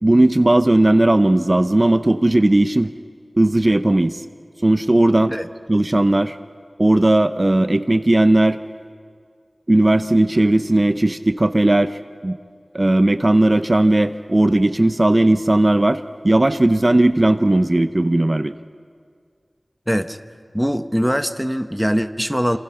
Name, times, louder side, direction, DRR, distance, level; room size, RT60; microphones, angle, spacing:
voice 1, 0.0-2.9 3.4-4.2 4.6-5.3 5.7-6.4 6.8-8.6 9.7-12.4 12.7-18.5, right 1 dB, 40° right, 10 dB, 0.8 m, -16 dB
voice 2, 19.9-20.2 20.5-22.6, equal, ahead, 9 dB, 0.9 m, -22 dB
27.0 x 27.0 x 5.8 m, 2.1 s
wide cardioid pair, 55°, 0 cm